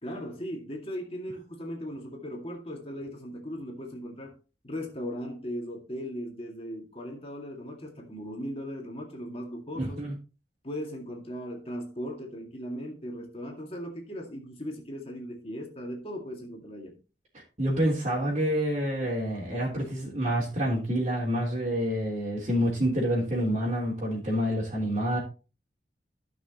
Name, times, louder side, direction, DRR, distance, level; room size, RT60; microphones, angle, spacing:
voice 1, 0.0-4.4 4.6-10.0 10.6-17.0, equal, 35° left, 2.0 m, -38 dB
voice 2, 9.7-10.1 17.6-25.2, equal, 35° right, 3.7 m, -27 dB
15.5 x 6.1 x 2.9 m
head